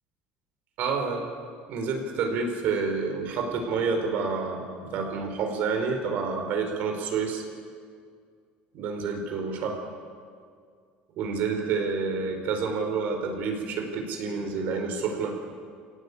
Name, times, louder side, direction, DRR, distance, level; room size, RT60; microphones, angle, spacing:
voice 1, 0.8-1.3 1.7-7.4 8.7-9.8 11.2-15.3, right 5 dB, 55° right, 4 dB, 4.8 m, -29 dB
29.0 x 17.5 x 8.6 m, 2.1 s
cardioid pair, 170°, 4 cm